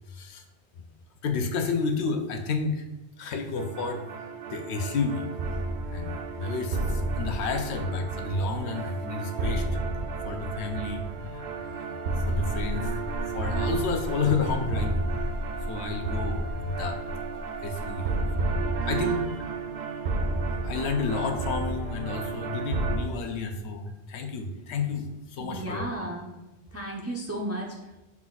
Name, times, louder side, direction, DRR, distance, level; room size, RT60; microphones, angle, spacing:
voice 1, 0.1-0.4 1.2-2.8 3.2-4.0 4.5-5.3 5.9-9.7 10.2-11.9 12.3-12.9 13.3-15.2 15.7-17.1 17.6-18.1 18.4-19.3 20.5-25.8, left 4 dB, 75° left, 5 dB, 0.9 m, -31 dB
sound 1, 3.6-23.0, right 3 dB, 75° right, 0.9 m, -31 dB
Buzz, 12.1-18.2, left 1 dB, 50° left, 0.3 m, -38 dB
voice 2, 25.4-26.4 26.7-28.0, right 1 dB, 25° right, -1 dB, 0.3 m, -35 dB
5.8 x 2.4 x 3.9 m, 1.0 s
omnidirectional pair, 1.1 m